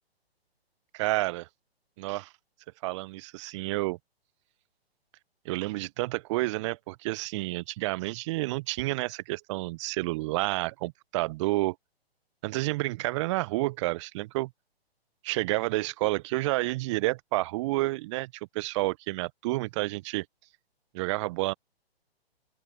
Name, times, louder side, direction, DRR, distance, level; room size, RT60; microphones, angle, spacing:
voice 1, 0.9-1.5 2.0-2.3 2.8-4.0 5.4-11.7 12.4-14.5 15.2-20.2 20.9-21.5, right 20 dB, 30° right, 1.2 m, -30 dB
open air
figure-of-eight pair, 125°, 31 cm